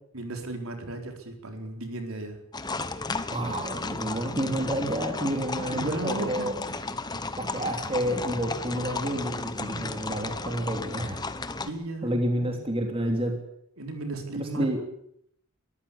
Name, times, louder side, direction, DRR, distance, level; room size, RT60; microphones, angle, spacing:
voice 1, 0.1-2.4 5.6-6.7 7.1-7.2 11.6-12.6 13.8-14.7, right 2 dB, 70° right, 4 dB, 4.2 m, -35 dB
sound 1, 2.5-11.7, left 3 dB, 20° left, 1.1 m, -34 dB
voice 2, 3.3-6.6 7.4-11.2 12.0-13.4 14.4-14.8, right 1 dB, 25° right, 3 dB, 3.1 m, -29 dB
23.0 x 14.5 x 8.4 m, 0.70 s
head